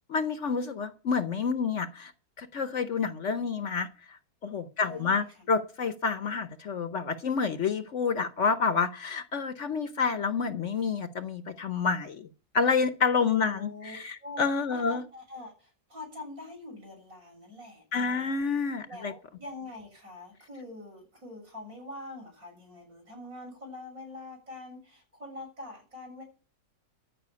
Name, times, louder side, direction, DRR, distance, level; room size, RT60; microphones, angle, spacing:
voice 1, 0.1-2.1 2.4-4.2 4.4-12.3 12.5-15.0 17.9-19.1, left 5 dB, 55° left, 11 dB, 1.0 m, -29 dB
voice 2, 4.8-5.5 13.2-14.0 14.2-14.4 14.7-18.4 18.9-26.2, left 2 dB, 65° right, 2 dB, 8.0 m, -44 dB
13.5 x 5.8 x 9.5 m, 0.37 s
omnidirectional pair, 1.6 m